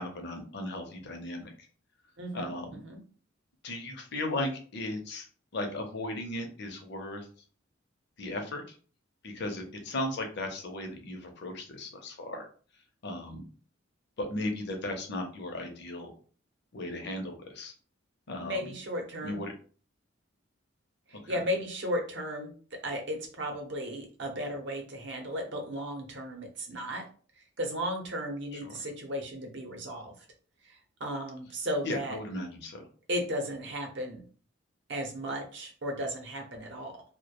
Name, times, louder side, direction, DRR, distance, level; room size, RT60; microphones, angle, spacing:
voice 1, 0.0-1.5 2.3-2.8 3.6-5.3 5.5-7.3 8.2-8.6 9.2-12.5 13.0-13.4 14.2-16.1 16.7-17.7 18.3-18.7 19.2-19.5 21.2-21.4 28.6-28.7 31.8-32.8, left 1 dB, 55° left, 4 dB, 0.6 m, -36 dB
voice 2, 2.2-3.0 18.4-19.4 21.1-22.5 22.8-27.0 27.4-30.1 30.6-32.2 33.1-34.2 34.9-37.0, equal, 60° right, 3 dB, 0.7 m, -35 dB
2.2 x 2.1 x 2.9 m, 0.41 s
head